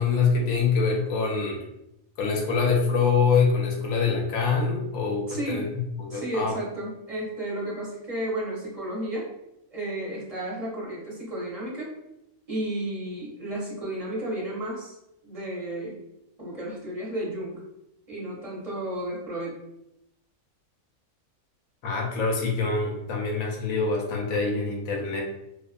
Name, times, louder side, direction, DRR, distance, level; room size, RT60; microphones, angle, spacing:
voice 1, 0.0-1.6 2.2-6.6 21.8-25.2, left 5 dB, 90° left, 0 dB, 1.1 m, -25 dB
voice 2, 5.3-5.6 6.1-9.3 9.7-11.9 12.5-15.0 15.2-16.0 16.4-17.6 18.1-19.6, right 1 dB, 30° right, -6 dB, 0.8 m, -32 dB
2.5 x 2.3 x 2.4 m, 0.85 s
omnidirectional pair, 1.4 m